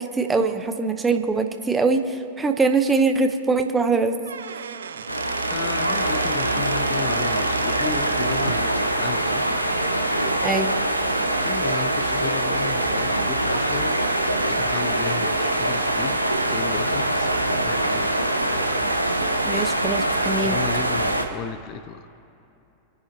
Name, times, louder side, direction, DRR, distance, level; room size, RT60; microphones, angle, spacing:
voice 1, 0.0-4.2 10.4-10.7 19.5-20.6, right 3 dB, 15° right, 7 dB, 0.9 m, -22 dB
Squeak / Wood, 4.1-8.7, right 7 dB, 70° right, 0.6 m, -36 dB
sound 1, 5.1-21.2, right 1 dB, 90° right, 1.0 m, -23 dB
voice 2, 5.5-9.4 11.4-13.9 14.4-16.2 16.5-18.2 20.4-22.1, left 7 dB, 40° left, 11 dB, 0.7 m, -34 dB
29.0 x 10.0 x 2.9 m, 2.7 s
figure-of-eight pair, 90°, 0 cm